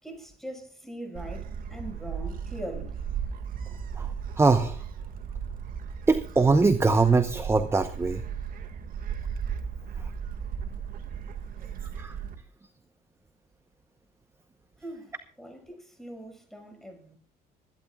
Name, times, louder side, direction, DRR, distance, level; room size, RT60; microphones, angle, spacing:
voice 1, 0.0-2.9 14.8-17.2, right 1 dB, ahead, 6.1 m, -41 dB
Gull seagull, 1.1-12.3, right 7 dB, 55° right, 2.1 m, -36 dB
voice 2, 4.4-4.8 6.1-8.2 12.0-12.1, right 3 dB, 15° right, 0.9 m, -22 dB
26.0 x 11.5 x 2.4 m
cardioid pair, 110°, 17 cm